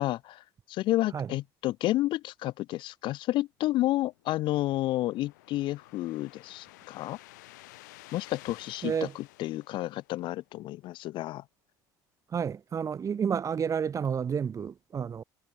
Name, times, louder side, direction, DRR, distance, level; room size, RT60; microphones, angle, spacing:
voice 1, 0.0-7.2 8.1-11.4, left 16 dB, 60° left, 0.4 m, -31 dB
sound 1, 4.0-10.6, left 20 dB, 85° left, 3.7 m, -53 dB
voice 2, 12.3-15.2, right 7 dB, 35° right, 0.7 m, -30 dB
hypercardioid pair, 75°, 9 cm